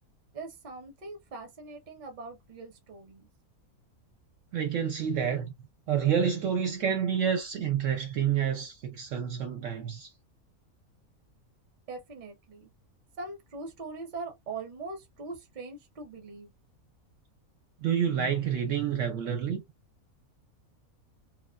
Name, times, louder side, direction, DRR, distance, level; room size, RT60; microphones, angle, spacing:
voice 1, 0.3-3.3 11.9-12.7 13.2-16.5, right 3 dB, 40° right, 0.7 m, -41 dB
voice 2, 4.5-5.5 5.9-10.1 17.8-19.6, right 8 dB, 65° right, 0.9 m, -28 dB
2.4 x 2.3 x 2.3 m
omnidirectional pair, 1.6 m